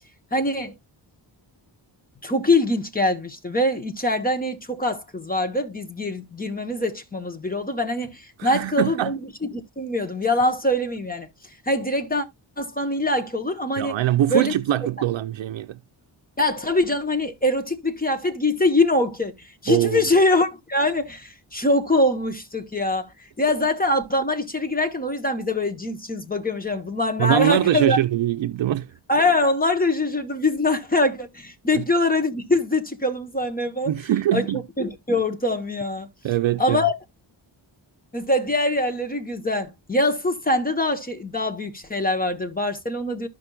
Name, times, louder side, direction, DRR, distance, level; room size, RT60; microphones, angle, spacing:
voice 1, 0.3-0.8 2.2-9.3 9.5-11.3 11.7-12.3 12.6-14.0 14.3-14.5 16.4-23.1 23.4-28.0 29.1-33.9 34.3-34.5 34.8-36.1 36.6-36.9 38.1-43.3, left 2 dB, 20° left, 1.0 m, -23 dB
voice 2, 8.4-9.1 13.8-15.8 19.7-20.0 27.2-28.9 31.7-31.8 33.9-34.6 36.2-36.8, right 12 dB, 75° right, 0.5 m, -22 dB
14.0 x 5.2 x 2.3 m
wide cardioid pair, 170°, 45 cm